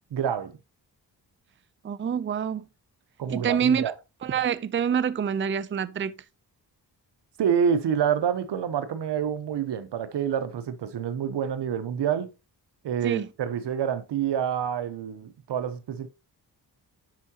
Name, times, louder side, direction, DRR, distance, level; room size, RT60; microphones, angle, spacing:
voice 1, 0.1-0.6 3.2-3.9 7.4-12.3 12.8-16.1, right 8 dB, 85° right, 0.9 m, -27 dB
voice 2, 1.8-2.7 3.3-3.8 4.2-6.1 13.0-13.3, right 7 dB, 30° right, 0.5 m, -26 dB
10.5 x 4.7 x 2.9 m
cardioid pair, 65°, 40 cm